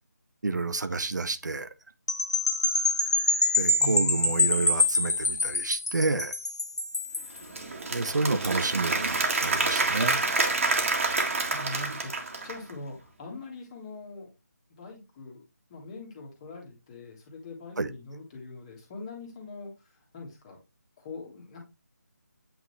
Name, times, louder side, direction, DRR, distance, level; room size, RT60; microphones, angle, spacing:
voice 1, 0.4-1.7 3.6-6.3 7.9-10.2 17.8-17.9, right 3 dB, 80° right, 0.8 m, -29 dB
sound 1, 2.1-7.4, left 2 dB, 70° left, 1.6 m, -25 dB
voice 2, 3.8-4.2 11.1-14.3 14.7-15.4 15.7-19.7 20.1-20.6 21.0-21.6, left 2 dB, 20° left, 1.8 m, -41 dB
Applause / Crowd, 7.3-12.7, right 3 dB, 50° right, 1.8 m, -28 dB
8.6 x 3.8 x 3.3 m
figure-of-eight pair, 165°, 10 cm